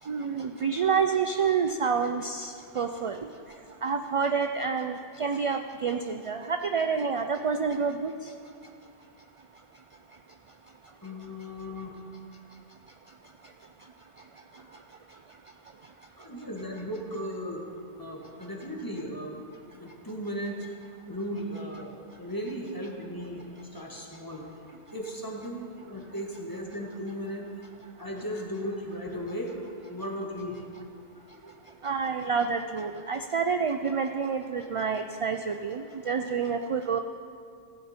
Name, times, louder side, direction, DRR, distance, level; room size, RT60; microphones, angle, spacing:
voice 1, 0.1-3.2 3.8-8.1 31.8-37.0, right 5 dB, 50° right, 7 dB, 0.4 m, -28 dB
voice 2, 11.0-12.0 14.5-14.8 16.2-17.6 18.0-19.4 19.7-20.7 21.1-24.5 24.9-27.5 28.0-30.6 31.1-31.7, equal, 20° left, -1 dB, 1.6 m, -36 dB
15.5 x 10.5 x 4.4 m, 2.3 s
omnidirectional pair, 1.0 m